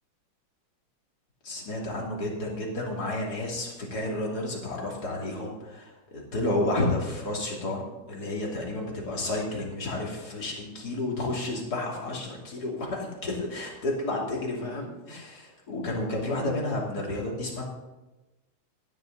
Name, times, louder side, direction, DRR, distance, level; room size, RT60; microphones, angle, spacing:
voice 1, 1.4-17.6, left 2 dB, 45° left, -2 dB, 3.3 m, -31 dB
17.0 x 11.0 x 4.0 m, 1.1 s
omnidirectional pair, 2.4 m